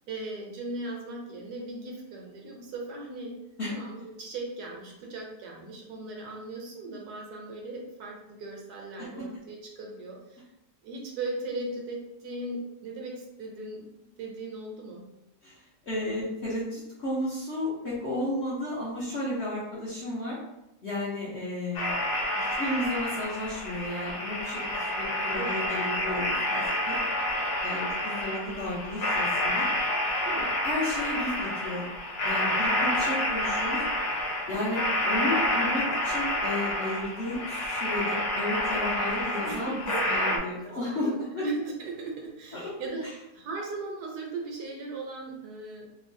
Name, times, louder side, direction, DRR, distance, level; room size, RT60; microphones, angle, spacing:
voice 1, 0.1-3.3 3.7-10.4 10.8-13.9 14.2-15.0 25.3-25.7 30.3-30.6 33.1-33.2 39.4-43.1 43.3-45.9, right 2 dB, 70° right, -1 dB, 1.1 m, -38 dB
voice 2, 15.4-20.4 20.8-22.0 22.4-27.0 27.6-29.7 30.6-31.9 32.2-33.8 34.5-41.1 41.3-41.4 42.5-42.7, left 1 dB, 55° left, -8 dB, 0.8 m, -33 dB
sound 1, 21.7-40.4, left 1 dB, 75° left, 1.2 m, -29 dB
3.1 x 2.6 x 2.5 m, 0.91 s
omnidirectional pair, 1.8 m